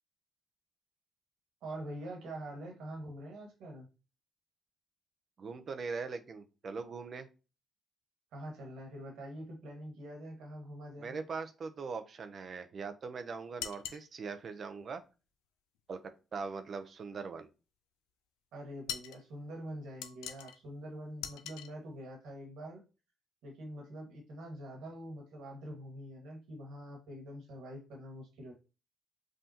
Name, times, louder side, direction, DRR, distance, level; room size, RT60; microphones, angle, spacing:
voice 1, 1.6-3.9 8.3-11.1 18.5-22.9 23.4-28.5, right 1 dB, 75° right, 0 dB, 1.9 m, -45 dB
voice 2, 5.4-7.3 11.0-15.0 15.9-17.5, right 4 dB, 50° right, 8 dB, 0.8 m, -41 dB
sound 1, 13.6-14.1 18.9-19.2 20.0-20.6 21.2-21.7, left 10 dB, 85° left, 0.4 m, -41 dB
5.6 x 2.6 x 2.9 m, 0.31 s
supercardioid pair, 60°, 0 cm